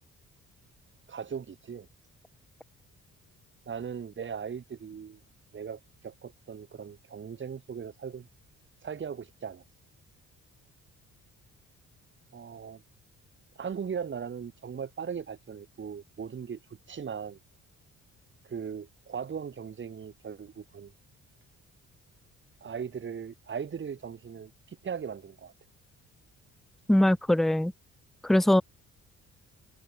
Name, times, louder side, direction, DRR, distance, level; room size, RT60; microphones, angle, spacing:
voice 1, 1.1-1.9 3.7-5.2 5.5-8.3 8.8-9.6 12.3-12.8 13.6-17.4 18.4-20.9 22.6-25.5, right 7 dB, 40° right, 6.0 m, -38 dB
voice 2, 26.9-27.7 28.2-28.6, left 1 dB, ahead, 0.6 m, -22 dB
cardioid pair, 135°, 30 cm